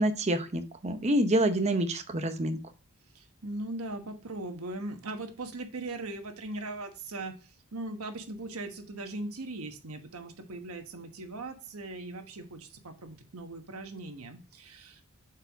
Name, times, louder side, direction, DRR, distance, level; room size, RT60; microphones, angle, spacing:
voice 1, 0.0-2.6, right 1 dB, 30° right, 9 dB, 0.7 m, -27 dB
voice 2, 3.1-15.0, right 2 dB, 80° right, 6 dB, 1.2 m, -39 dB
7.5 x 4.7 x 3.4 m, 0.33 s
head